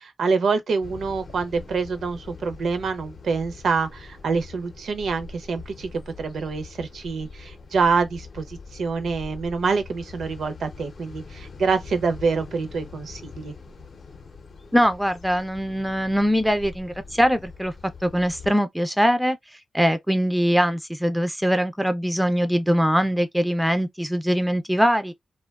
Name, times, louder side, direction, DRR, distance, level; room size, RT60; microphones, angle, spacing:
voice 1, 0.0-5.9 6.2-13.5, right 4 dB, 75° right, 0.5 m, -26 dB
sound 1, 0.8-18.5, left 4 dB, 50° left, 0.5 m, -43 dB
voice 2, 14.7-17.7 18.0-19.4 19.7-25.1, equal, 5° right, 0.3 m, -22 dB
2.6 x 2.1 x 2.3 m
wide cardioid pair, 145°, 0 cm